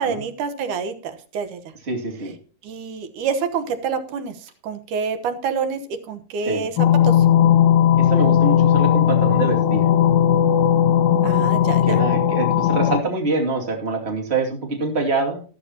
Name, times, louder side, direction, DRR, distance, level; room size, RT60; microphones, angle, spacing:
voice 1, 0.0-1.6 2.6-4.3 4.6-5.8 6.1-6.7 7.0-7.2 11.2-12.0, right 6 dB, 85° right, 9 dB, 2.7 m, -27 dB
voice 2, 1.9-2.3 6.4-6.7 8.0-9.9 11.8-15.4, right 3 dB, 20° right, 1 dB, 2.3 m, -25 dB
sound 1, 6.8-13.0, left 10 dB, 85° left, 2.2 m, -17 dB
13.5 x 13.0 x 2.9 m, 0.38 s
omnidirectional pair, 3.5 m